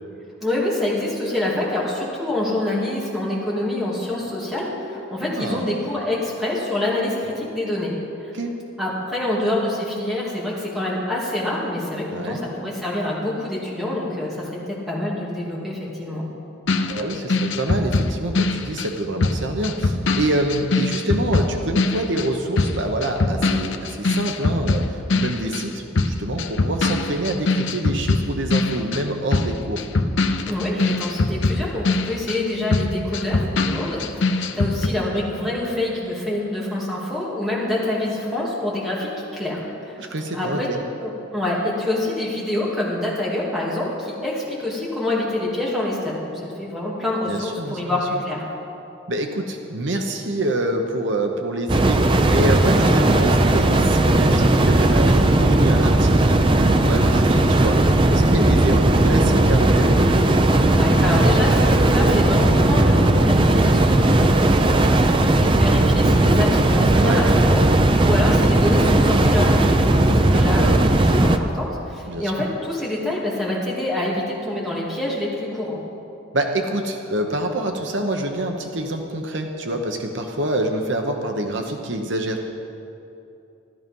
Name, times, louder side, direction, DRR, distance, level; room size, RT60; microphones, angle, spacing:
voice 1, 0.4-7.9 8.2-8.3 8.8-14.6 14.9-16.2 30.4-40.0 40.3-40.7 41.0-48.5 60.7-69.8 70.1-75.8, left 1 dB, ahead, -6 dB, 2.8 m, -26 dB
voice 2, 5.4-5.8 8.3-8.5 12.1-12.4 16.8-29.9 40.0-40.8 47.3-48.0 49.1-52.0 52.3-60.0 66.9-67.3 70.3-70.9 72.1-72.4 76.3-82.5, right 1 dB, 65° right, 4 dB, 1.0 m, -26 dB
sound 1, 16.7-25.7 26.0-34.9, left 3 dB, 70° left, 0.7 m, -22 dB
sound 2, 51.7-71.4, right 1 dB, 25° right, 0.5 m, -17 dB
14.0 x 12.5 x 5.4 m, 2.8 s
head